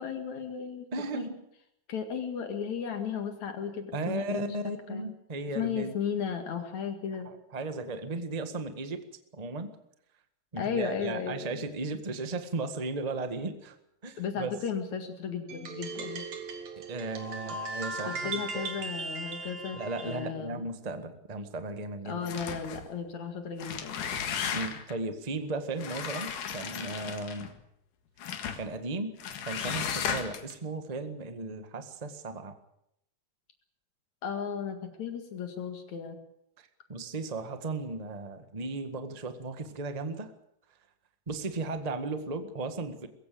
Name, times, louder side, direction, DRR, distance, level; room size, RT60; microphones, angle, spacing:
voice 1, 0.0-0.9 1.1-1.2 1.9-4.5 4.9-5.0 5.5-7.3 10.6-11.6 14.2-16.2 18.1-20.6 22.0-24.1 34.2-36.2, left 7 dB, 65° left, 7 dB, 3.2 m, -35 dB
voice 2, 0.9-1.4 3.9-5.9 7.2-9.0 9.3-9.7 10.5-13.8 14.0-14.5 16.9-18.7 19.7-22.2 24.5-27.5 28.6-29.2 29.4-32.5 36.6-40.3 41.3-43.1, right 3 dB, 20° right, 8 dB, 1.0 m, -36 dB
sound 1, 15.5-20.2, right 3 dB, 60° right, 3.6 m, -38 dB
sound 2, 22.2-22.9 23.5-25.0 25.8-27.5 28.2-28.7 29.2-30.5, left 7 dB, 85° left, 3.4 m, -35 dB
22.5 x 15.5 x 8.6 m, 0.76 s
omnidirectional pair, 3.5 m